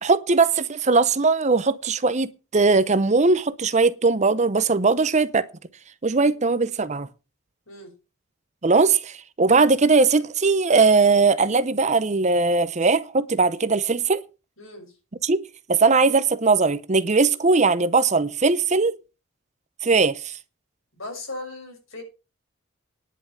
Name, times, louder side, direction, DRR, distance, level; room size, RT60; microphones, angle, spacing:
voice 1, 0.0-5.5 6.0-7.1 8.6-14.2 15.2-15.4 15.7-18.9 19.8-20.4, right 4 dB, 35° right, 0.7 m, -20 dB
voice 2, 14.6-15.0 21.0-22.0, left 2 dB, 75° left, 6.8 m, -38 dB
10.5 x 7.0 x 7.2 m
head